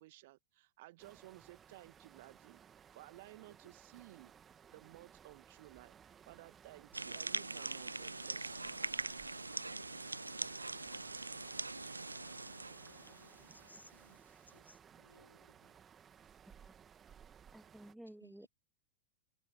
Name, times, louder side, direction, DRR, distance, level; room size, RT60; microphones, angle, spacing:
voice 1, 0.0-2.6 2.9-4.3 4.7-5.9 6.2-8.8, right 18 dB, 50° right, 2.1 m, -56 dB
sound 1, 1.0-17.9, right 8 dB, 25° right, 2.4 m, -60 dB
sound 2, 6.9-13.7, right 3 dB, 80° right, 0.5 m, -42 dB
voice 2, 9.6-15.8 18.0-18.5, left 1 dB, 85° left, 3.2 m, -63 dB
voice 3, 17.5-18.5, right 1 dB, ahead, 1.1 m, -53 dB
figure-of-eight pair, 90°, 0 cm